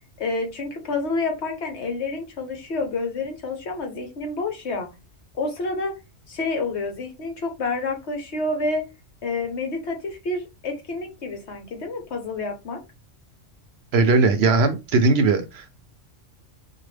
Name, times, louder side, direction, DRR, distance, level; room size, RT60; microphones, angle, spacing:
voice 1, 0.2-4.9 5.3-5.9 6.3-8.8 9.2-12.8, left 3 dB, 65° left, 1.2 m, -28 dB
voice 2, 13.9-15.7, right 3 dB, 65° right, 0.8 m, -19 dB
4.7 x 2.3 x 3.2 m
omnidirectional pair, 1.3 m